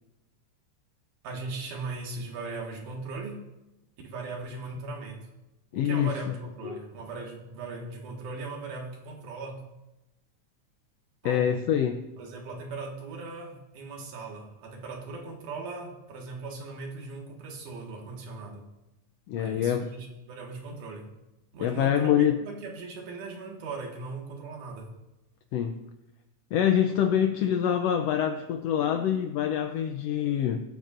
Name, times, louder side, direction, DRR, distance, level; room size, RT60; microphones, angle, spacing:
voice 1, 1.2-3.5 4.0-5.3 5.7-9.6 11.2-11.6 12.2-18.7 19.4-21.1 21.5-24.9, right 3 dB, 85° right, 0 dB, 3.2 m, -39 dB
voice 2, 5.7-6.1 6.6-6.8 11.2-12.0 19.3-19.9 21.6-22.4 25.5-25.8 26.5-30.6, left 9 dB, 80° left, 6 dB, 1.4 m, -25 dB
22.5 x 8.8 x 2.5 m, 0.99 s
omnidirectional pair, 3.5 m